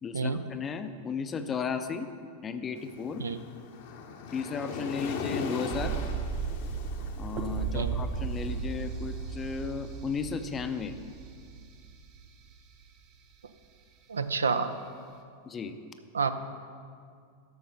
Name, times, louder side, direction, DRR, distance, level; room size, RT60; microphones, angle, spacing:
voice 1, 0.0-2.1 2.4-3.2 4.3-6.0 7.2-10.9 15.5-15.8, left 5 dB, 20° left, 9 dB, 0.6 m, -34 dB
Waves surf, 2.8-9.9, left 5 dB, 50° left, 1.0 m, -40 dB
sound 1, 5.7-12.5 12.8-12.9, right 6 dB, 40° right, 1.0 m, -35 dB
voice 2, 14.1-14.7 16.1-16.3, right 5 dB, 70° right, 10 dB, 0.5 m, -28 dB
12.0 x 7.0 x 5.3 m, 2.2 s
figure-of-eight pair, 90°, 0 cm